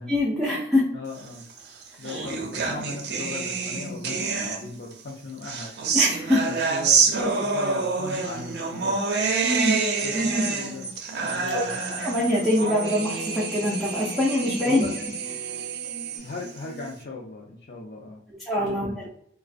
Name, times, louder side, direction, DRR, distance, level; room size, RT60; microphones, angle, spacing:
voice 1, 0.1-0.8 2.1-2.3 5.9-6.4 7.2-7.3 9.4-9.8 10.1-10.5 11.5-11.6 12.0-14.8 18.5-19.1, left 1 dB, ahead, -8 dB, 0.4 m, -24 dB
voice 2, 0.9-1.4 2.0-5.7 6.5-9.0 10.0-10.9 11.2-11.8 14.6-15.0 16.2-18.2 18.6-19.1, left 3 dB, 60° left, -3 dB, 0.4 m, -38 dB
sound 1, 1.5-4.9 5.4-16.9, right 4 dB, 70° right, 0.4 m, -28 dB
sound 2, 10.8-11.0 11.3-11.4 11.7-16.2, right 5 dB, 20° left, 0.9 m, -36 dB
2.4 x 2.1 x 2.4 m, 0.66 s
head